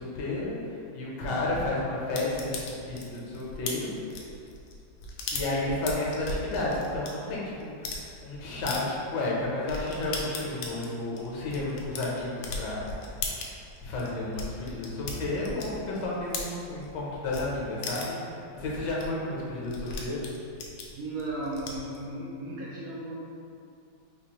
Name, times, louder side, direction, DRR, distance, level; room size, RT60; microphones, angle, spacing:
voice 1, 0.0-3.9 5.3-12.9 13.8-20.3, left 2 dB, 70° left, -5 dB, 1.4 m, -32 dB
sound 1, 2.1-7.1 7.6-8.0 8.7-8.8 9.2-9.3 9.7-17.0 17.3-17.4 17.8-18.3 18.7-18.8 19.0-19.1 19.3-22.0, left 4 dB, 85° left, 1.3 m, -37 dB
voice 2, 21.0-23.2, right 1 dB, 80° right, -6 dB, 0.8 m, -35 dB
4.6 x 2.5 x 2.9 m, 2.5 s
omnidirectional pair, 2.1 m